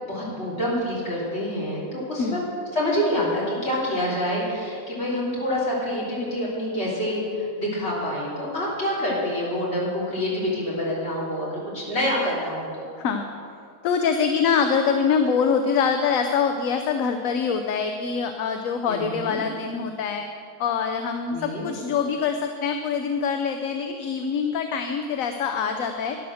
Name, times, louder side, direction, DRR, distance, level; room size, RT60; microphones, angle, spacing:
voice 1, 0.1-2.4 2.7-12.9 18.9-19.4 21.3-21.7, left 1 dB, 40° left, -6 dB, 3.8 m, -27 dB
voice 2, 2.2-2.5 13.0-13.3 13.8-20.2 20.6-26.2, left 6 dB, 65° left, 6 dB, 1.1 m, -24 dB
12.0 x 10.5 x 6.4 m, 2.3 s
omnidirectional pair, 1.6 m